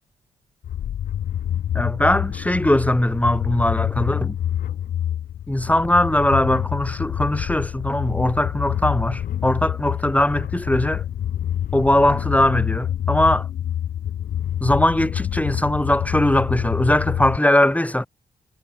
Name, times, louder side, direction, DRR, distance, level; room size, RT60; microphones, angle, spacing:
sound 1, 0.6-17.4, left 10 dB, 75° left, 0.9 m, -27 dB
voice 1, 1.7-4.4 5.5-11.0 11.7-13.5 14.6-18.1, left 1 dB, 10° left, 4.6 m, -20 dB
cardioid pair, 55°, 14 cm